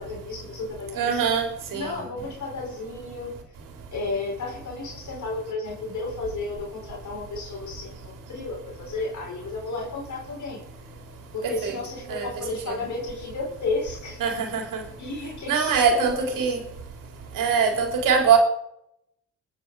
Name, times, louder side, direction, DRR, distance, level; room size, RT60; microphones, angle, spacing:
voice 1, 0.0-1.2 1.7-3.3 3.9-10.6 11.3-14.2 15.0-16.5, left 3 dB, 65° left, -1 dB, 4.8 m, -33 dB
voice 2, 1.0-1.4 1.7-2.0 11.6-11.8 12.1-12.3 12.7-12.8 14.2-14.8 15.5-16.6 17.4-18.4, right 6 dB, 85° right, 4 dB, 3.7 m, -22 dB
21.5 x 8.9 x 4.9 m, 0.77 s
cardioid pair, 65°, 32 cm